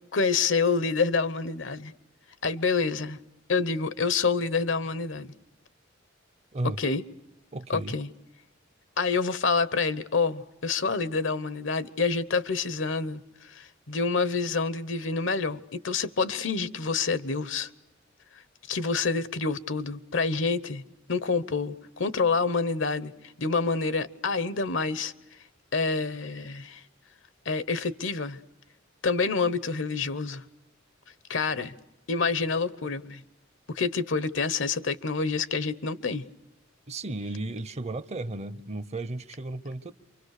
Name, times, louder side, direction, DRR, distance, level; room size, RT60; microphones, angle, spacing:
voice 1, 0.1-1.9 2.4-3.2 3.5-5.3 6.6-7.0 7.7-8.1 9.0-17.7 18.7-20.8 21.1-23.1 23.4-25.1 25.7-26.8 27.4-28.4 29.0-30.4 31.3-31.7 32.1-33.2 33.7-36.2, left 4 dB, 70° left, 1.0 m, -27 dB
voice 2, 7.5-8.0 36.9-39.9, right 2 dB, 35° right, 0.8 m, -34 dB
28.0 x 24.5 x 6.6 m
head